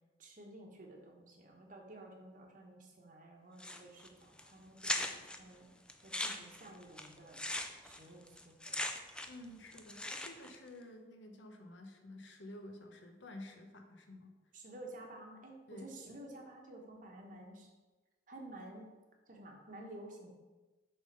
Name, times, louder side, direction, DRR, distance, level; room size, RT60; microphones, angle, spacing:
voice 1, 0.2-5.7 6.0-7.4 7.8-8.9 14.5-17.7 18.3-18.9 19.3-20.3, right 1 dB, 45° right, 1 dB, 1.2 m, -52 dB
sound 1, 3.6-4.1 4.4-4.5 4.8-5.4 5.9-9.4 9.7-10.5, left 1 dB, 5° left, 0.4 m, -39 dB
voice 2, 9.3-14.4 15.7-16.0, left 1 dB, 85° left, 4 dB, 1.0 m, -51 dB
6.8 x 3.8 x 5.4 m, 1.2 s
head